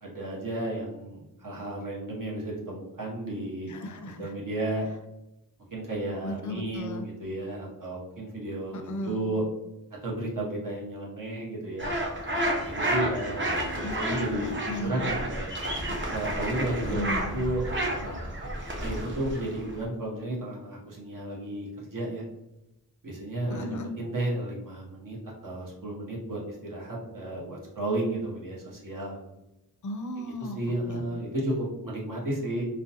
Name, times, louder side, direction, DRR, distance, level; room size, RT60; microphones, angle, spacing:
voice 1, 0.0-3.7 4.2-4.9 5.7-9.4 10.0-11.9 12.6-13.6 13.8-15.5 16.1-18.4 18.8-22.2 23.0-25.2 25.4-29.2 30.4-32.7, right 1 dB, 55° right, -3 dB, 0.8 m, -33 dB
voice 2, 3.7-4.3 6.2-7.1 8.7-9.2 13.8-15.1 16.8-17.4 23.5-23.9 29.8-30.6 30.9-31.0, left 1 dB, 50° left, 5 dB, 0.4 m, -35 dB
sound 1, 11.8-19.8, right 1 dB, 30° right, 0.5 m, -31 dB
2.5 x 2.1 x 2.6 m, 0.92 s
wide cardioid pair, 65°, 38 cm